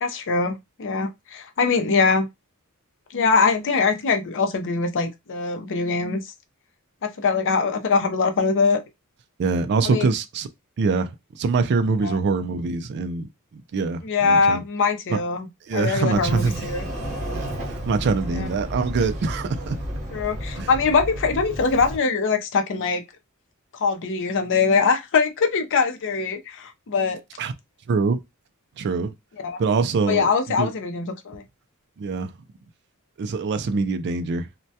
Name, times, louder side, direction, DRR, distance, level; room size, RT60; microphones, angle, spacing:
voice 1, 0.0-2.3 3.1-6.2 7.0-8.8 9.8-10.1 12.0-12.2 14.0-15.5 15.7-16.8 18.3-18.5 20.1-23.0 23.8-27.2 29.4-29.6 30.1-31.4, left 4 dB, 55° left, 0.5 m, -22 dB
voice 2, 9.4-10.5 10.8-14.6 15.1-15.2 15.7-16.7 17.3-19.8 20.6-20.7 27.4-27.5 27.9-28.2 28.8-29.1 29.6-30.3 30.6-30.7 32.0-32.3 33.2-34.5, right 4 dB, 50° right, 0.3 m, -24 dB
Sliding door, 16.1-22.0, equal, 35° right, 0.9 m, -32 dB
2.1 x 2.1 x 2.7 m
head